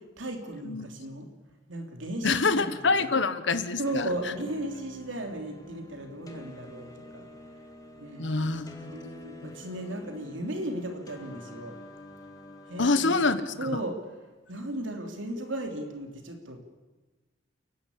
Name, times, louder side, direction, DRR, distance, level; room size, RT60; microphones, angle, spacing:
voice 1, 0.2-1.3 1.7-2.7 3.0-3.1 3.8-7.3 8.0-11.7 12.7-13.2 13.6-14.0 14.5-16.6, right 1 dB, 75° right, 4 dB, 3.0 m, -36 dB
voice 2, 2.2-4.1 8.2-8.9 12.8-13.8, left 3 dB, 65° left, 13 dB, 1.1 m, -26 dB
sound 1, 3.9-13.5, left 1 dB, 20° left, 1.9 m, -48 dB
29.5 x 11.5 x 8.6 m, 1.2 s
head